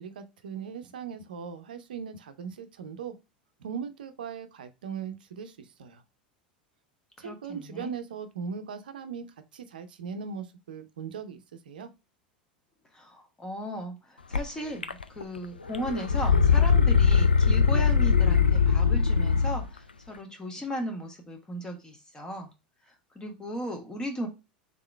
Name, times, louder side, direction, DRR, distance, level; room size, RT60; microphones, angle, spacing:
voice 1, 0.0-3.2 3.6-6.0 7.2-9.3 9.5-11.4 11.6-11.9, right 6 dB, 75° right, 0.6 m, -39 dB
voice 2, 7.2-7.9 12.9-22.5 22.9-24.3, equal, 15° left, 1.4 m, -36 dB
sound 1, 14.3-14.4 14.8-15.4 15.7-19.6, left 6 dB, 90° left, 0.4 m, -21 dB
3.7 x 3.6 x 3.2 m
figure-of-eight pair, 85°, 5 cm